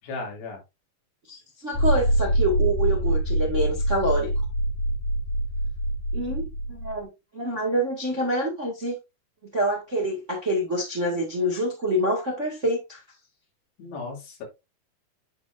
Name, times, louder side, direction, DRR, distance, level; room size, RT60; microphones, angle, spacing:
voice 1, 0.0-0.6 13.8-14.4, left 3 dB, 85° left, 5.0 m, -35 dB
voice 2, 1.3-4.3 6.1-7.1 7.3-9.0 9.5-13.0, right 1 dB, 30° right, 1.3 m, -26 dB
sound 1, 1.7-7.0, right 1 dB, 45° left, 5.7 m, -25 dB
9.7 x 6.2 x 2.6 m
omnidirectional pair, 4.7 m